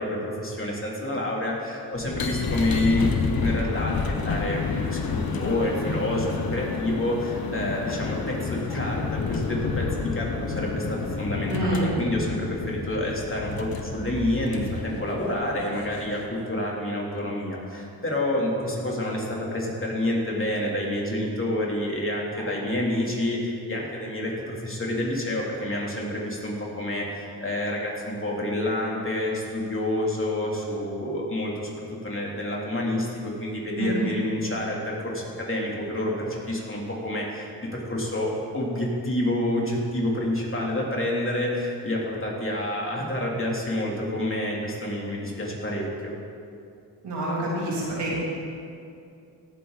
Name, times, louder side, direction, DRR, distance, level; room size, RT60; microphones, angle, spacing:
voice 1, 0.0-46.1, left 1 dB, 30° left, -3 dB, 3.3 m, -28 dB
sound 1, 1.9-16.4, left 4 dB, 60° left, 1.2 m, -30 dB
voice 2, 11.5-11.9 33.8-34.1 47.0-48.1, right 2 dB, 85° right, -6 dB, 3.4 m, -27 dB
17.5 x 8.3 x 4.1 m, 2.5 s
cardioid pair, 50°, 40 cm